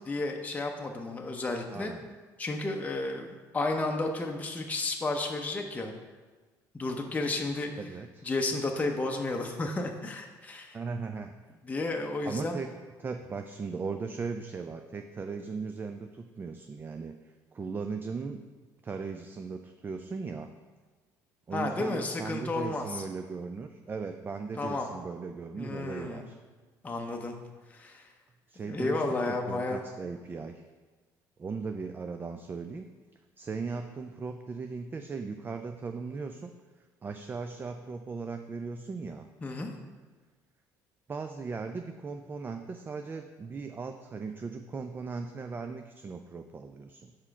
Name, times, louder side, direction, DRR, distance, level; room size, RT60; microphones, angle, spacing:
voice 1, 0.1-1.9 2.4-3.3 3.5-5.9 6.7-7.7 8.2-10.8 11.6-12.6 21.5-23.0 24.6-24.9 25.6-26.2 26.8-27.3 27.7-28.1 28.6-29.8 39.4-39.8, left 2 dB, 20° left, 2 dB, 0.6 m, -32 dB
voice 2, 1.7-2.1 7.8-8.3 10.7-11.3 12.3-12.7 13.0-18.4 18.8-20.5 21.5-26.4 28.5-30.6 31.4-32.9 33.4-36.5 37.0-39.3 41.1-47.1, right 4 dB, 25° right, 6 dB, 0.3 m, -38 dB
4.8 x 4.4 x 5.8 m, 1.3 s
supercardioid pair, 95°, 8 cm